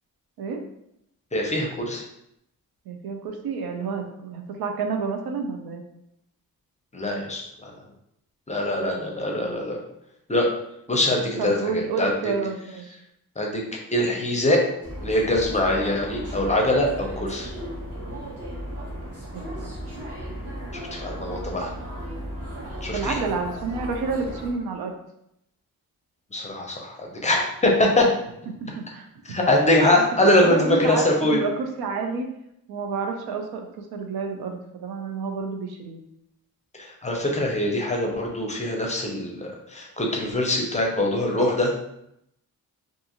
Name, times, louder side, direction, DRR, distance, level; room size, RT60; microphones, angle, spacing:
voice 1, 1.3-2.0 6.9-7.7 8.5-9.8 10.3-10.5 10.9-12.3 13.4-13.6 13.9-14.6 15.0-17.5 20.7-21.7 22.8-23.2 26.3-28.0 29.3-31.4 36.8-41.7, left 1 dB, 20° left, 0 dB, 0.5 m, -23 dB
voice 2, 2.9-5.8 11.4-13.0 19.3-19.7 22.9-24.9 28.5-29.1 30.2-32.3 32.7-36.0, right 4 dB, 80° right, 4 dB, 0.5 m, -29 dB
sound 1, 14.8-24.5, equal, 40° right, 0.9 m, -35 dB
2.5 x 2.4 x 2.8 m, 0.79 s
cardioid pair, 95°, 36 cm